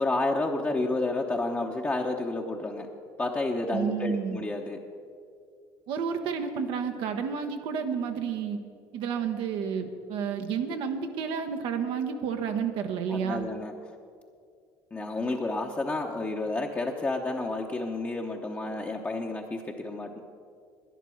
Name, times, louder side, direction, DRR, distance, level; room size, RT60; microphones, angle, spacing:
voice 1, 0.0-2.9 3.2-4.8 13.1-13.7 14.9-20.2, left 2 dB, 20° left, 0 dB, 0.9 m, -30 dB
voice 2, 3.7-4.4 5.9-8.6 8.9-13.5, right 6 dB, 75° right, 5 dB, 1.0 m, -30 dB
11.0 x 10.5 x 6.4 m, 2.3 s
cardioid pair, 100°, 9 cm